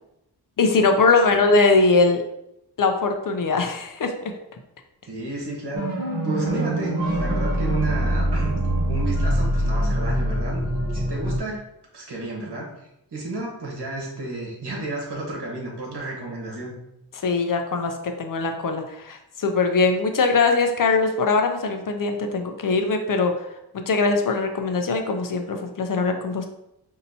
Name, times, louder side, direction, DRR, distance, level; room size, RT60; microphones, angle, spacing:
voice 1, 0.6-2.2 2.8-4.3 17.2-23.4 23.7-26.5, left 3 dB, 55° left, 5 dB, 0.5 m, -21 dB
voice 2, 5.1-5.9 6.2-8.6 8.9-10.6 10.9-11.6 11.9-16.7, right 2 dB, 75° right, -2 dB, 1.3 m, -32 dB
sound 1, 5.7-11.4, right 1 dB, 50° right, 1.1 m, -24 dB
5.3 x 2.8 x 2.7 m, 0.83 s
wide cardioid pair, 145°, 40 cm